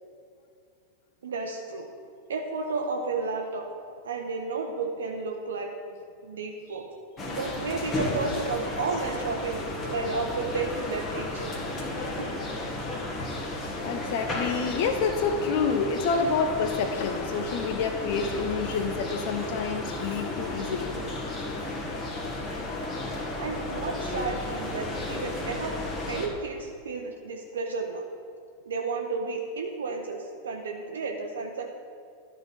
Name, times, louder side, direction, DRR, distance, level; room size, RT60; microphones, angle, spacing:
voice 1, 1.2-1.9 2.3-3.7 4.0-5.7 6.2-6.9 7.3-9.6 9.9-11.5 12.2-12.4 23.4-25.8 26.1-28.0 28.7-31.7, right 4 dB, 65° right, 2 dB, 0.7 m, -32 dB
sound 1, 7.2-26.3, left 2 dB, 25° left, 1.5 m, -33 dB
voice 2, 13.8-20.9, left 5 dB, 50° left, 6 dB, 0.6 m, -28 dB
12.0 x 4.0 x 5.7 m, 2.5 s
figure-of-eight pair, 90°, 0 cm